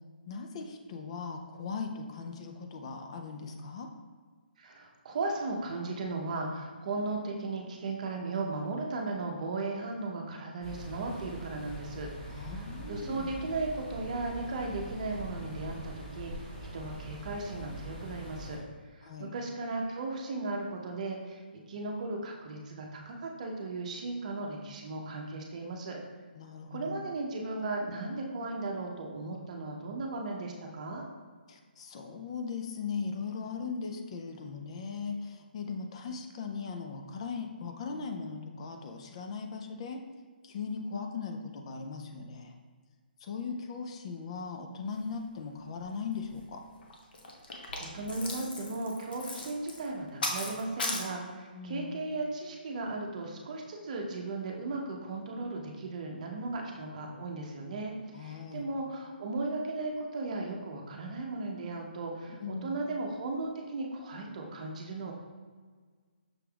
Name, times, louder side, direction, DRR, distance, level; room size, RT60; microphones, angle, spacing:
voice 1, 0.3-3.9 12.3-13.4 19.0-19.3 26.3-27.0 31.5-40.0 40.4-42.6 43.2-46.6 51.5-52.0 58.1-58.7 62.3-62.8, left 5 dB, 35° left, 4 dB, 0.4 m, -39 dB
voice 2, 4.6-12.5 12.9-16.3 16.7-18.6 18.9-21.4 21.7-26.0 26.7-31.0 47.8-65.1, right 2 dB, 45° right, 1 dB, 0.7 m, -36 dB
sound 1, 10.6-18.6, right 1 dB, 5° left, 1.3 m, -43 dB
sound 2, 45.8-45.9 46.1-46.4 46.8-51.1, left 2 dB, 65° left, 0.8 m, -37 dB
6.1 x 3.3 x 2.3 m, 1.5 s
hypercardioid pair, 160°, 5 cm